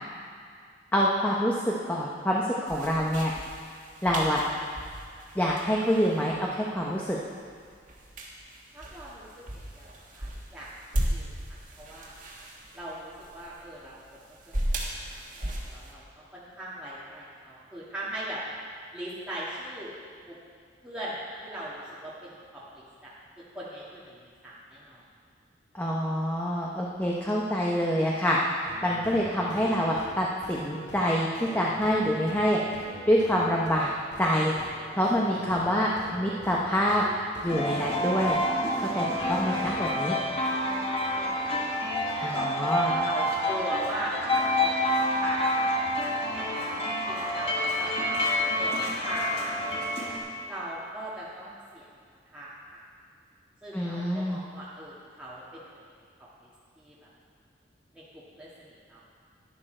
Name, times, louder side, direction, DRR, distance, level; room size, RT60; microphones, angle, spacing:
voice 1, 0.9-3.3 4.0-4.4 5.3-7.2 25.7-28.4 28.8-31.3 31.5-32.6 33.1-33.9 34.2-34.5 34.9-37.0 37.4-38.4 38.8-40.2 42.2-43.0 53.7-54.4, equal, 10° left, -4 dB, 0.8 m, -26 dB
sound 1, 2.7-15.9, right 1 dB, 45° right, 1.7 m, -37 dB
voice 2, 8.7-9.4 9.7-12.1 12.7-14.0 14.5-14.6 15.0-16.0 16.3-18.4 18.9-19.9 20.3-20.4 20.8-23.1 23.5-25.0 41.0-41.6 42.0-44.7 45.1-48.2 48.5-49.8 50.5-51.9 52.3-52.8 53.6-55.6 56.4-56.5 56.8-57.1 57.9-59.0, right 1 dB, 5° right, -9 dB, 1.6 m, -40 dB
sound 2, 28.6-40.0, right 1 dB, 65° left, 2.0 m, -44 dB
sound 3, 37.5-50.2, left 1 dB, 30° left, 1.4 m, -28 dB
11.5 x 11.0 x 4.4 m, 2.1 s
head